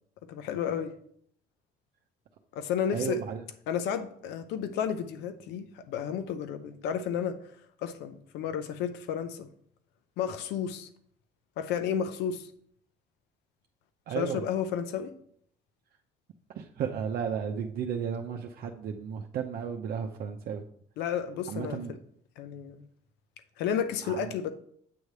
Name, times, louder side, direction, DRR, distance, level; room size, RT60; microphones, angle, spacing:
voice 1, 0.3-0.9 2.5-3.2 3.7-7.4 7.8-9.5 10.2-10.9 11.6-12.5 14.2-15.1 21.0-21.8 22.4-22.8 23.6-24.5, left 8 dB, 90° left, 9 dB, 0.7 m, -32 dB
voice 2, 2.9-3.5 14.1-14.4 16.5-20.6 21.5-22.0 24.0-24.3, right 7 dB, 60° right, 2 dB, 0.7 m, -34 dB
8.6 x 3.2 x 6.5 m, 0.64 s
cardioid pair, 110°, 17 cm